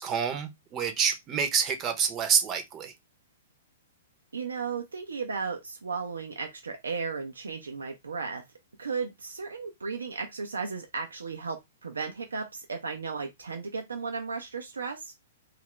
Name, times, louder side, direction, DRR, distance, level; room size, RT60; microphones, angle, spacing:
voice 1, 0.0-2.9, right 7 dB, 25° right, 0.7 m, -27 dB
voice 2, 4.3-8.4 8.8-15.1, right 5 dB, 80° right, 0.6 m, -35 dB
2.8 x 2.4 x 3.1 m
figure-of-eight pair, 110°, 0 cm